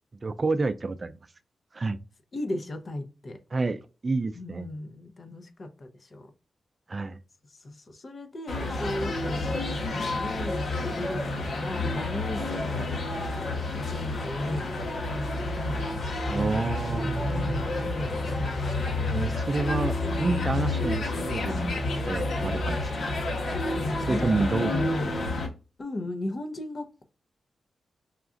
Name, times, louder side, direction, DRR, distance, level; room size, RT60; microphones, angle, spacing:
voice 1, 0.2-1.1 1.7-2.0 3.5-4.7 6.9-7.2 16.3-17.1 19.0-21.8 22.1-22.9 24.1-24.9, right 3 dB, 40° right, 0.3 m, -29 dB
voice 2, 2.3-3.4 4.3-6.3 7.5-10.7 11.0-13.0 13.9-14.9 15.5-15.9 17.2-19.0 20.4-20.7 23.8-25.1 25.8-27.0, left 1 dB, 50° left, 0.8 m, -36 dB
sound 1, 8.5-25.5, left 2 dB, 80° left, 1.1 m, -29 dB
5.7 x 2.4 x 2.4 m
cardioid pair, 75°, 0 cm